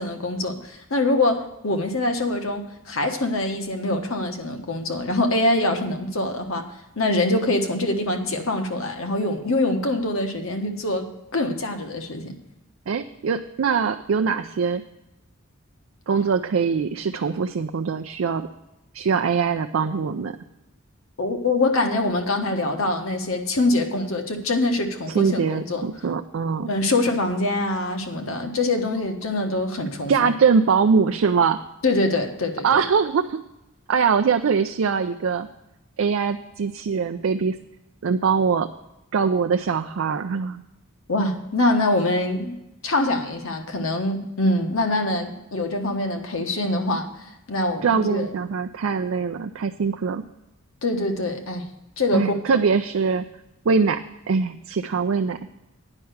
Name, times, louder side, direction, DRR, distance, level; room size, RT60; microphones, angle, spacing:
voice 1, 0.0-6.6 7.0-11.1 11.3-12.3 21.2-25.9 26.6-30.3 31.8-32.8 41.1-42.6 42.8-47.1 47.5-48.3 50.8-51.6 52.0-52.6, left 2 dB, 75° left, 5 dB, 1.3 m, -24 dB
voice 2, 12.9-14.8 16.1-18.5 18.9-20.4 25.1-26.7 30.1-31.6 32.6-33.4 33.9-35.5 36.0-37.6 38.0-38.7 39.1-40.6 47.8-50.2 52.1-53.2 53.7-55.5, right 5 dB, 65° right, 7 dB, 0.4 m, -22 dB
9.8 x 5.7 x 8.0 m, 0.93 s
head